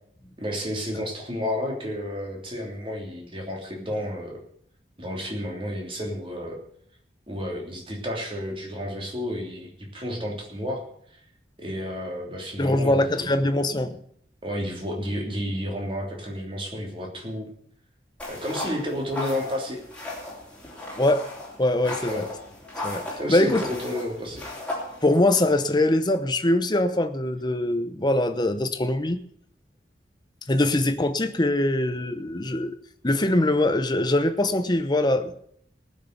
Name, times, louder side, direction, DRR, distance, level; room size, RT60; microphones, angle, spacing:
voice 1, 0.4-4.4 5.0-6.6 7.3-10.8 11.1-11.2 11.6-13.3 14.4-17.5 18.3-19.8 22.0-22.3 23.2-24.4, equal, 30° right, 3.1 m, -31 dB
voice 2, 12.6-14.0 21.0-21.3 21.6-22.2 22.8-23.6 25.0-29.2 30.5-32.8 33.0-35.4, left 1 dB, 25° left, 0.9 m, -23 dB
sound 1, 18.2-25.4, left 2 dB, 5° left, 3.1 m, -36 dB
18.5 x 6.6 x 6.7 m
head